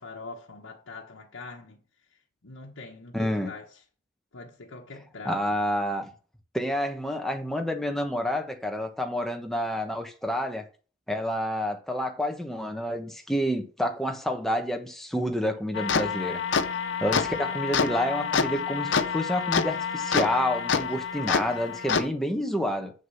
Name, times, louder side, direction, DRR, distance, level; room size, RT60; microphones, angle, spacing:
voice 1, 0.0-1.8 2.4-3.8 4.3-5.4 17.8-18.0, left 3 dB, 85° left, 1.2 m, -43 dB
voice 2, 3.1-3.5 5.2-6.1 6.5-10.7 11.1-16.7 17.0-22.9, equal, ahead, 1.1 m, -29 dB
sound 1, 15.7-22.1, left 6 dB, 65° left, 0.7 m, -27 dB
7.6 x 6.5 x 5.6 m
head